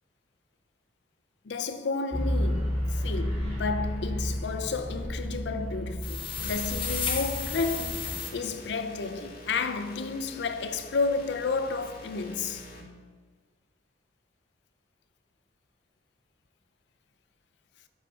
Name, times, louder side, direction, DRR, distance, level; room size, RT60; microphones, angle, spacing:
voice 1, 1.4-12.7, left 4 dB, 75° left, 0.5 m, -31 dB
sound 1, 2.1-8.0, equal, 30° right, 2.0 m, -32 dB
sound 2, 6.0-8.3, left 6 dB, 30° left, 0.7 m, -33 dB
sound 3, 6.4-12.8, left 1 dB, 60° left, 1.0 m, -45 dB
5.0 x 4.9 x 4.8 m
head